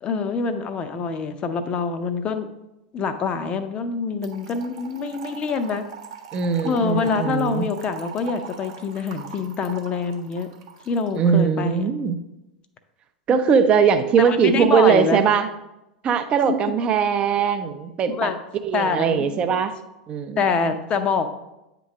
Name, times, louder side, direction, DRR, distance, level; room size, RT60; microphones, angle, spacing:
voice 1, 0.0-2.5 2.9-5.8 6.6-10.5 10.9-11.9 14.2-15.3 16.5-16.6 18.1-18.4 18.7-19.6 20.4-21.3, left 5 dB, 30° left, 9 dB, 0.6 m, -25 dB
Trickle dribble / Fill (with liquid), 4.2-11.3, right 6 dB, 55° right, 0.9 m, -41 dB
voice 2, 6.3-7.7 11.2-12.2 13.3-15.5 16.0-18.3 18.6-19.7 20.1-20.4, right 7 dB, 30° right, 9 dB, 0.5 m, -20 dB
8.7 x 3.0 x 4.8 m, 0.93 s
figure-of-eight pair, 85°, 4 cm